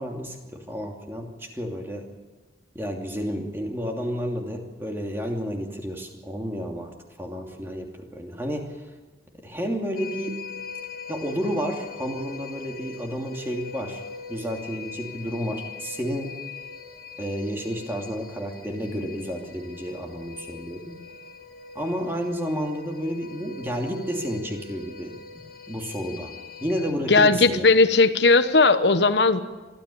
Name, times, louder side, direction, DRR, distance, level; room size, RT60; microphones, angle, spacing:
voice 1, 0.0-2.0 2.7-8.7 9.4-10.5 11.1-14.0 14.3-16.3 17.2-20.9 21.7-25.4 25.7-26.3 26.6-27.7, equal, 15° right, 1 dB, 2.7 m, -31 dB
sound 1, 10.0-26.9, left 5 dB, 55° left, 2.1 m, -41 dB
voice 2, 27.1-29.4, left 3 dB, 80° left, 10 dB, 1.1 m, -17 dB
23.5 x 13.5 x 8.6 m, 1.2 s
head